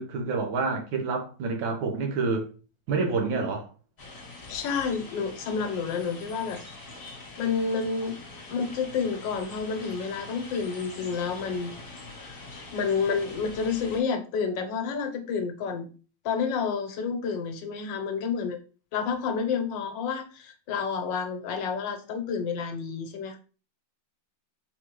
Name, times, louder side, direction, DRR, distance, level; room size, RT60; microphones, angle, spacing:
voice 1, 0.0-2.5 2.9-3.7, right 4 dB, 85° right, 1.8 m, -28 dB
sound 1, 4.0-14.0, left 2 dB, 35° left, 1.0 m, -44 dB
voice 2, 4.5-6.6 7.4-8.2 8.5-11.8 12.2-12.4 12.7-15.9 16.2-18.6 18.9-23.4, left 5 dB, 75° left, 1.4 m, -29 dB
3.8 x 3.7 x 3.0 m
omnidirectional pair, 2.1 m